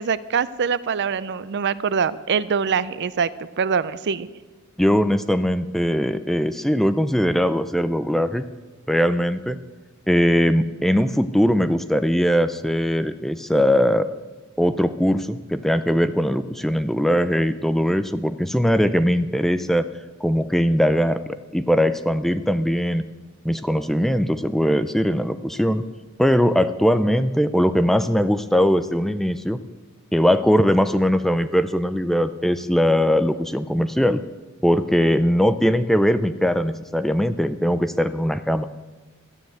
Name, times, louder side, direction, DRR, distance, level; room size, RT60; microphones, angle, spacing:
voice 1, 0.0-3.3 3.6-4.3, right 6 dB, 55° right, 16 dB, 0.5 m, -23 dB
voice 2, 4.8-8.4 8.9-9.6 10.1-14.1 14.6-19.9 20.2-21.2 21.5-23.0 23.4-25.8 26.2-29.6 30.1-34.2 34.6-38.6, equal, ahead, 11 dB, 0.4 m, -20 dB
13.0 x 9.4 x 7.9 m, 1.2 s
head